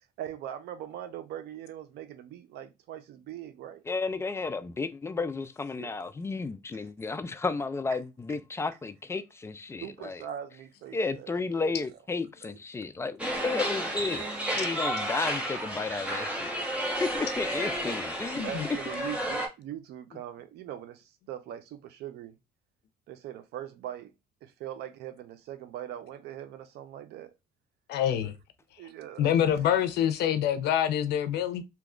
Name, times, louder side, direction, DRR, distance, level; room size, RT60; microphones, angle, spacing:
voice 1, 0.2-3.8 5.8-5.9 9.8-11.9 12.4-12.5 15.4-17.3 18.4-22.4 23.1-24.1 24.4-27.3 28.1-28.3 28.8-29.6, right 11 dB, 75° right, 0.6 m, -42 dB
voice 2, 3.9-10.2 10.9-16.5 17.0-18.4, left 4 dB, 15° left, 0.3 m, -33 dB
sound 1, 13.2-19.5, equal, 5° right, 1.0 m, -32 dB
voice 3, 18.3-18.6 27.9-28.3 29.2-31.6, left 10 dB, 75° left, 0.6 m, -26 dB
3.0 x 2.3 x 3.6 m
cardioid pair, 110°, 17 cm